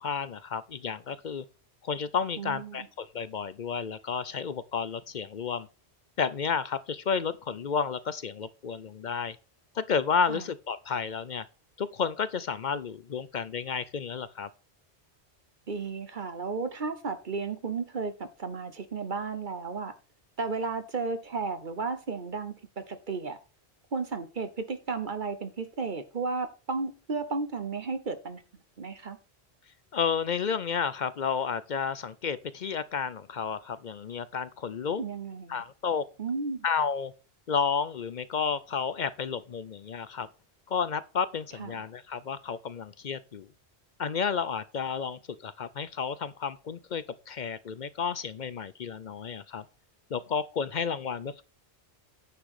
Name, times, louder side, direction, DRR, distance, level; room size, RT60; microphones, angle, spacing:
voice 1, 0.0-1.4 1.8-5.7 6.2-9.4 9.8-11.5 11.8-14.5 29.9-35.0 35.5-36.0 36.6-37.1 37.5-40.3 40.7-43.5 44.0-49.6 50.1-51.4, left 6 dB, 50° left, 0.7 m, -31 dB
voice 2, 2.4-2.9 10.3-10.4 15.7-19.9 20.4-23.4 23.9-28.4 28.8-29.2 35.0-35.6 36.2-36.6 41.6-41.8, right 4 dB, 50° right, 1.1 m, -33 dB
9.9 x 6.0 x 4.9 m
omnidirectional pair, 1.1 m